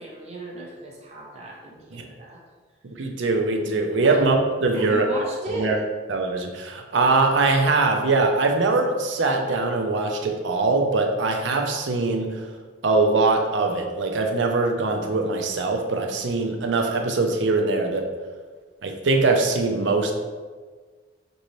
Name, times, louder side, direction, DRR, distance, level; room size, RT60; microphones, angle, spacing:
voice 1, 0.0-2.4 4.0-4.2 4.7-5.8, right 1 dB, 35° right, -2 dB, 0.7 m, -36 dB
voice 2, 3.0-5.0 5.5-5.8 6.1-12.4 12.8-18.1 18.8-20.1, right 3 dB, 75° right, 3 dB, 0.5 m, -22 dB
5.3 x 2.6 x 3.1 m, 1.5 s
head